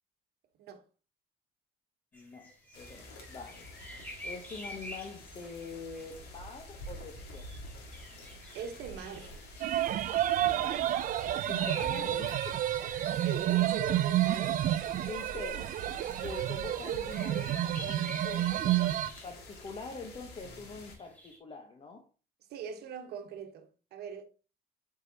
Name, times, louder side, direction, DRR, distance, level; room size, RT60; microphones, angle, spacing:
voice 1, 2.1-3.7 4.2-7.5 10.5-12.6 14.6-14.7 15.1-18.9 19.2-22.0, left 4 dB, 35° left, 1.0 m, -45 dB
sound 1, 2.1-15.2 15.6-21.4, equal, 10° left, 2.5 m, -50 dB
sound 2, 2.7-20.9, left 1 dB, 80° left, 2.0 m, -49 dB
voice 2, 8.5-9.4 13.1-14.8 16.2-16.3 22.5-24.2, right 7 dB, 75° right, 1.2 m, -41 dB
sound 3, 9.6-19.1, right 13 dB, 55° right, 0.4 m, -30 dB
7.6 x 4.7 x 2.8 m
cardioid pair, 110°, 17 cm